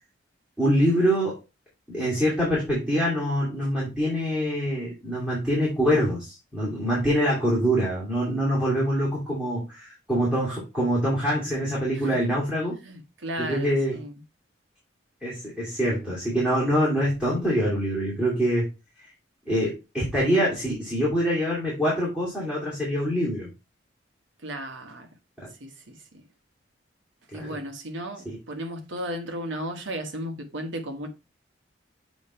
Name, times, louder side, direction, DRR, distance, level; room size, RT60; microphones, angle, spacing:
voice 1, 0.6-1.4 1.9-12.7 13.5-14.0 15.2-18.7 19.5-23.5 27.3-27.6, equal, 5° right, 2.5 m, -25 dB
voice 2, 12.8-14.2 24.4-25.1 25.6-26.2 27.3-31.1, right 1 dB, 75° right, 1.3 m, -35 dB
7.2 x 3.2 x 4.3 m
head